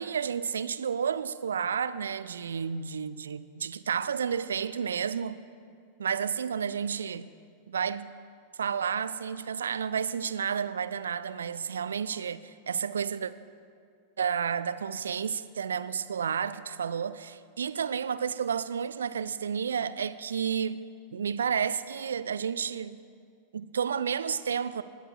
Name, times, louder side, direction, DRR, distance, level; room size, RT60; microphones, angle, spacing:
voice 1, 0.0-5.4 6.0-7.3 7.7-8.1 8.6-13.3 14.2-23.0 23.5-24.8, right 7 dB, 70° right, 0.4 m, -31 dB
19.5 x 6.6 x 4.7 m
figure-of-eight pair, 90°, 0 cm